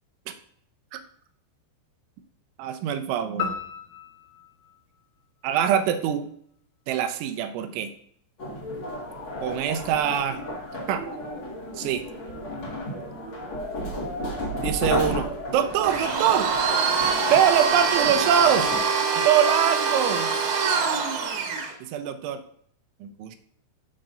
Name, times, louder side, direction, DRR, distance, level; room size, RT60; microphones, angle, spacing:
voice 1, 2.6-3.6 5.4-6.3 6.9-7.9 9.4-10.4 10.9-11.1 11.8-12.1 14.6-16.5 17.3-18.7 19.2-20.3 21.8-22.4 23.0-23.4, right 9 dB, 85° right, 8 dB, 3.1 m, -24 dB
sound 1, 3.4-5.9, left 8 dB, 85° left, 1.8 m, -36 dB
sound 2, 8.4-18.8, left 1 dB, 55° left, 1.3 m, -33 dB
Domestic sounds home sounds, 15.8-21.7, right 5 dB, 65° right, 2.7 m, -24 dB
14.5 x 5.2 x 2.6 m, 0.65 s
omnidirectional pair, 5.4 m